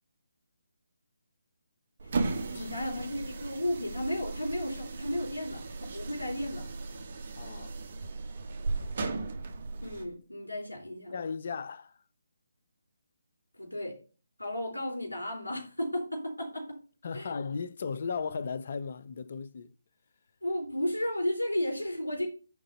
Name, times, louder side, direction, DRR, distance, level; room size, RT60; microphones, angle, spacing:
sound 1, 2.0-10.1, right 3 dB, 45° right, 1.3 m, -36 dB
voice 1, 2.5-6.7 9.8-11.1 13.6-14.0 14.4-16.8 17.1-17.3 20.4-22.3, left 1 dB, 90° left, 3.6 m, -33 dB
voice 2, 7.4-7.8 11.1-12.0 17.0-19.7, left 5 dB, 50° left, 0.6 m, -36 dB
9.7 x 3.9 x 5.5 m
figure-of-eight pair, 150°, 0 cm